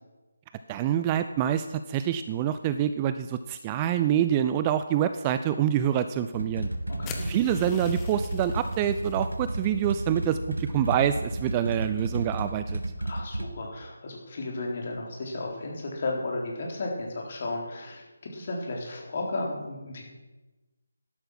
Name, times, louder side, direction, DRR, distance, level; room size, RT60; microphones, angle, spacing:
voice 1, 0.7-6.7 7.2-12.8, right 10 dB, 15° right, 10 dB, 0.4 m, -26 dB
sound 1, 6.3-13.5, right 1 dB, 75° right, 1.4 m, -32 dB
voice 2, 6.9-7.3 13.0-20.0, left 2 dB, 40° left, 0 dB, 3.8 m, -34 dB
sound 2, 7.0-9.2, left 6 dB, 15° left, 1.1 m, -43 dB
13.0 x 11.5 x 6.0 m, 1.1 s
figure-of-eight pair, 155°, 0 cm